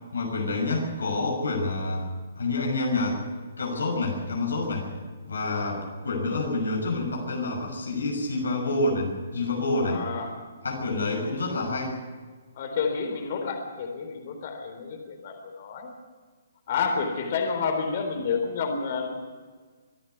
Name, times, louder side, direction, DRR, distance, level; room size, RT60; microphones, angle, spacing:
voice 1, 0.1-2.1 2.4-3.2 3.6-4.9 5.2-10.0 10.6-11.9, left 2 dB, 90° left, 1 dB, 6.2 m, -28 dB
voice 2, 5.4-5.8 9.7-10.4 12.6-15.9 16.7-19.1, left 5 dB, 50° left, 5 dB, 3.7 m, -30 dB
24.5 x 11.0 x 9.5 m, 1.5 s
hypercardioid pair, 150°, 0 cm